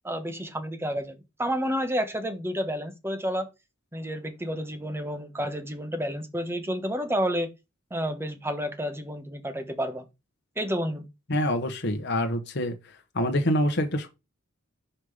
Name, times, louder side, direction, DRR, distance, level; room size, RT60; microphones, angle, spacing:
voice 1, 0.0-3.5 3.9-7.5 7.9-10.1 10.6-11.0, equal, 10° right, 1.1 m, -30 dB
voice 2, 11.3-14.1, left 1 dB, 55° left, 1.1 m, -26 dB
5.6 x 5.1 x 4.9 m
head